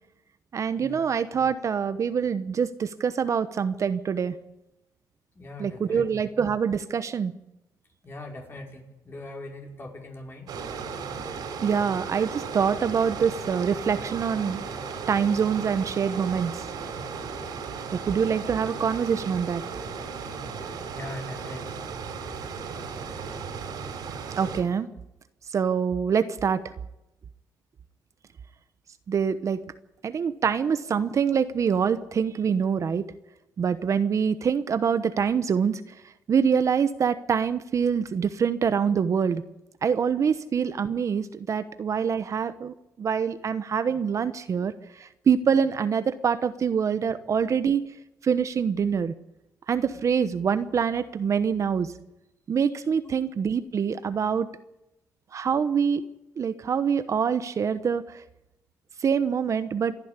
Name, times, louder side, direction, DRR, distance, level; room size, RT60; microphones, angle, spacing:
voice 1, 0.5-4.3 5.6-7.3 11.6-14.6 15.1-16.6 18.1-19.6 24.4-24.9 25.5-26.6 29.1-29.6 30.0-33.0 33.6-35.8 36.3-39.4 39.8-44.7 45.0-47.8 48.2-49.1 49.7-51.9 52.5-54.5 55.3-56.0 56.4-58.2 59.0-59.9, right 7 dB, 50° right, 12 dB, 1.0 m, -25 dB
voice 2, 5.4-6.1 8.0-10.5 20.9-21.9, left 2 dB, 35° left, 1 dB, 5.5 m, -41 dB
sound 1, 10.5-24.6, right 5 dB, 80° right, 4.3 m, -35 dB
27.0 x 10.5 x 9.7 m, 0.93 s
cardioid pair, 105°, 7 cm